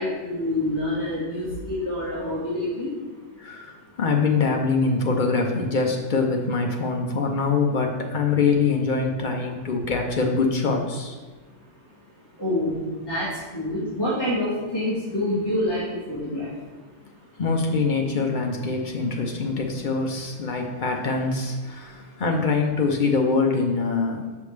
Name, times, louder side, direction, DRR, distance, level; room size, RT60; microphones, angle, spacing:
voice 1, 0.0-2.9 12.4-13.3 13.5-15.8 16.1-16.5, left 1 dB, 15° left, -12 dB, 1.7 m, -26 dB
voice 2, 3.4-11.2 17.4-24.3, left 4 dB, 55° left, 2 dB, 0.5 m, -24 dB
6.7 x 5.3 x 3.2 m, 1.3 s
omnidirectional pair, 1.5 m